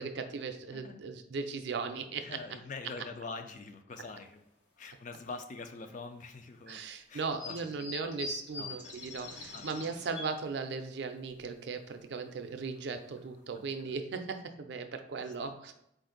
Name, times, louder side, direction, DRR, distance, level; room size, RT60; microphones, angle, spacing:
voice 1, 0.0-2.3 6.7-15.7, right 4 dB, 65° right, 7 dB, 0.4 m, -38 dB
voice 2, 2.2-4.4 4.8-6.8 7.1-8.2 8.6-8.9 9.5-9.7 13.5-14.0 15.2-15.5, left 4 dB, 40° left, 7 dB, 0.4 m, -45 dB
sound 1, 3.9-4.2 4.8-4.9 5.8-5.9 7.3-10.5 10.9-11.0 11.3-11.4 11.9-12.2 12.8-12.9 13.2-13.4 13.8-13.9, left 3 dB, 70° left, 0.9 m, -44 dB
4.1 x 2.5 x 3.8 m, 0.79 s
head